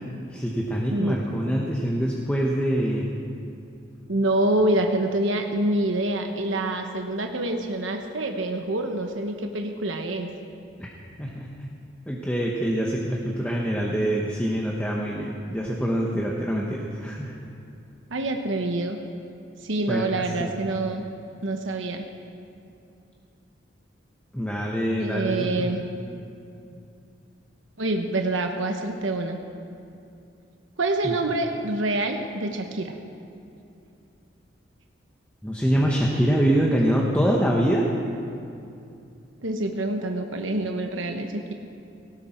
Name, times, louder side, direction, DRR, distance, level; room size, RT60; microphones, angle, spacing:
voice 1, 0.3-3.1 10.8-10.9 11.2-11.7 12.1-17.4 19.9-20.5 24.3-25.7 31.0-31.1 35.4-37.8, equal, 5° left, -3 dB, 1.1 m, -25 dB
voice 2, 0.9-1.2 4.1-10.3 18.1-19.0 19.6-21.1 21.4-22.0 25.0-25.8 27.8-29.4 30.8-32.9 39.4-41.5, right 2 dB, 85° right, 4 dB, 1.1 m, -26 dB
18.0 x 16.5 x 4.5 m, 2.6 s
head